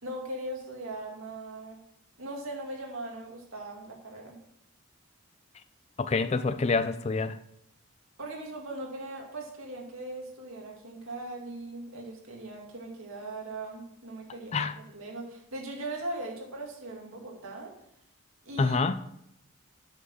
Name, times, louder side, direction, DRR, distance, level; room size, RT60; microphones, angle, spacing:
voice 1, 0.0-1.8 2.2-4.4 8.2-17.7 18.5-18.8, right 2 dB, 75° right, 2.2 m, -39 dB
voice 2, 6.0-7.4 14.5-14.7 18.6-19.0, left 4 dB, 30° left, 0.4 m, -27 dB
7.9 x 6.2 x 6.4 m
head